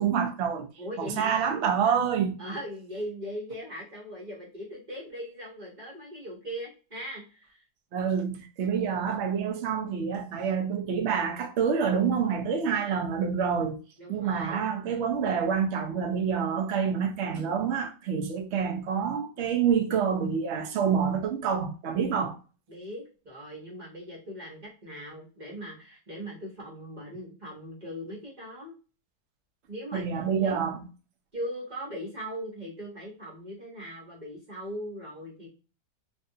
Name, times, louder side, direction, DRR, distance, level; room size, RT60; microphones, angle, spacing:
voice 1, 0.0-0.7 1.0-2.4 7.9-13.8 14.1-22.4 29.9-30.9, right 7 dB, 90° right, 0.6 m, -27 dB
voice 2, 0.8-1.4 1.8-2.0 2.4-7.6 14.0-14.6 22.7-28.7 29.7-30.1 30.3-30.6 31.3-35.5, equal, 35° right, 0.8 m, -39 dB
3.2 x 2.7 x 2.7 m
omnidirectional pair, 2.1 m